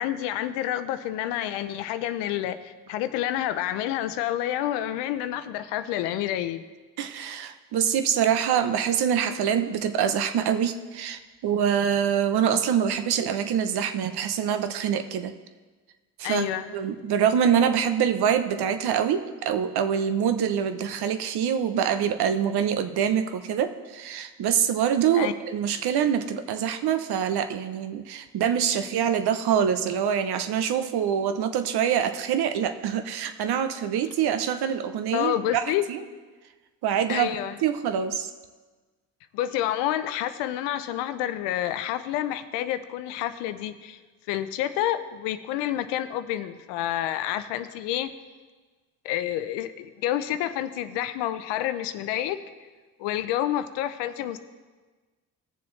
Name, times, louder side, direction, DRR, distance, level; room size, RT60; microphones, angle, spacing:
voice 1, 0.0-6.6 16.2-16.7 25.1-25.3 35.1-35.8 37.1-37.6 39.3-44.0 44.3-48.1 49.0-52.4 53.0-54.4, left 12 dB, 85° left, 12 dB, 0.6 m, -29 dB
voice 2, 7.0-15.3 16.2-16.5 16.7-35.6 35.9-36.0 36.8-37.4 37.6-38.3, right 8 dB, 65° right, 9 dB, 0.8 m, -25 dB
17.5 x 7.0 x 3.2 m, 1.3 s
hypercardioid pair, 50°, 41 cm